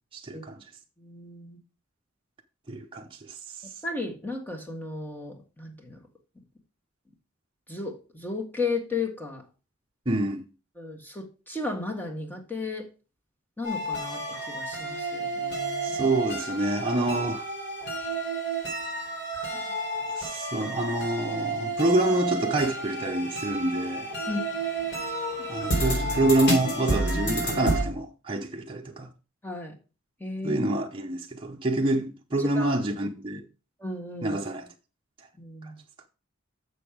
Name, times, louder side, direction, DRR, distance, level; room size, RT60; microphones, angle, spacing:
voice 1, 0.1-0.6 2.7-3.7 10.1-10.4 15.8-17.5 20.1-24.1 25.5-29.1 30.4-33.4 34.2-34.7, right 2 dB, 25° right, 0.8 m, -27 dB
voice 2, 1.0-1.6 3.8-6.0 7.7-9.4 10.8-12.9 13.6-16.0 24.3-24.4 29.4-29.7 30.2-30.6 32.4-32.8 33.8-34.4 35.4-35.8, left 3 dB, 10° left, 1.7 m, -34 dB
sound 1, 13.6-27.8, right 2 dB, 60° left, 4.0 m, -30 dB
7.1 x 6.6 x 5.0 m
head